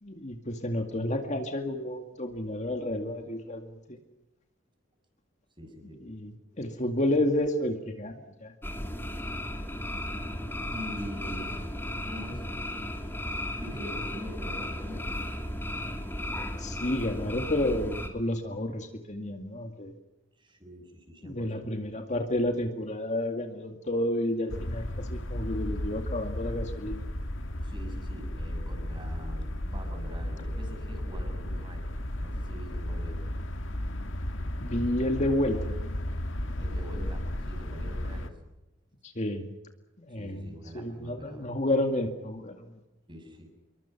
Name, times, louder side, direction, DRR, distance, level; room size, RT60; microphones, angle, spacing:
voice 1, 0.0-4.0 6.0-8.5 16.6-19.9 21.2-27.0 34.6-35.8 39.0-39.5 40.0-42.6, left 1 dB, 35° left, 5 dB, 2.2 m, -30 dB
voice 2, 5.6-6.0 10.1-11.7 12.1-12.4 12.9-13.0 13.6-15.1 20.4-21.7 27.6-31.9 32.2-33.2 36.5-38.3 40.1-41.5 43.1-43.5, equal, 25° right, 5 dB, 6.6 m, -44 dB
sound 1, 8.6-18.1, left 1 dB, 10° left, 3.0 m, -35 dB
sound 2, 24.5-38.3, left 1 dB, 75° left, 2.0 m, -34 dB
27.0 x 23.0 x 5.9 m, 0.96 s
head